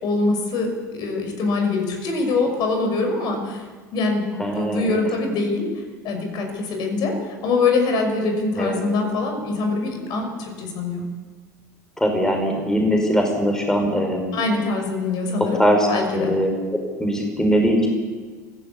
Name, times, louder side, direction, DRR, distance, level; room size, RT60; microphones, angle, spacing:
voice 1, 0.0-3.7 3.9-5.7 6.0-11.0 14.3-15.6 15.9-16.3, left 3 dB, 45° left, 3 dB, 5.8 m, -23 dB
voice 2, 4.4-5.0 8.6-8.8 12.0-14.4 15.4-15.9 16.1-16.5 17.0-17.9, equal, 5° left, 2 dB, 4.8 m, -21 dB
23.0 x 16.0 x 8.5 m, 1.4 s
figure-of-eight pair, 75°, 10 cm